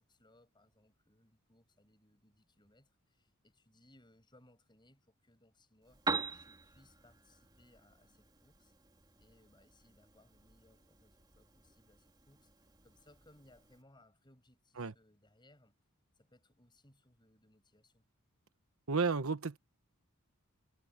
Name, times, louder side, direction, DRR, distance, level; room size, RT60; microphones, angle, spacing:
voice 1, 0.0-6.0 6.3-8.7 9.2-15.8 16.1-18.0, left 1 dB, 20° left, 7.9 m, -67 dB
Piano, 5.8-13.8, right 4 dB, 20° right, 3.1 m, -45 dB
voice 2, 18.9-19.6, right 4 dB, 70° right, 1.1 m, -32 dB
head